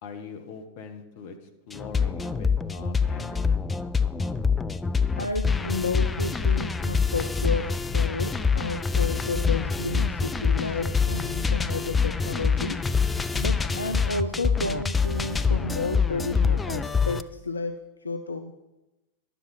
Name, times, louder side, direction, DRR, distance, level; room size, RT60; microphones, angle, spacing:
voice 1, 0.0-3.7, left 5 dB, 50° left, 6 dB, 1.3 m, -42 dB
sound 1, 1.7-17.2, left 5 dB, 15° left, 0.4 m, -25 dB
voice 2, 5.1-12.8 13.3-18.5, left 3 dB, 80° left, 7 dB, 0.5 m, -31 dB
11.5 x 7.0 x 5.5 m, 1.0 s
figure-of-eight pair, 90°, 0 cm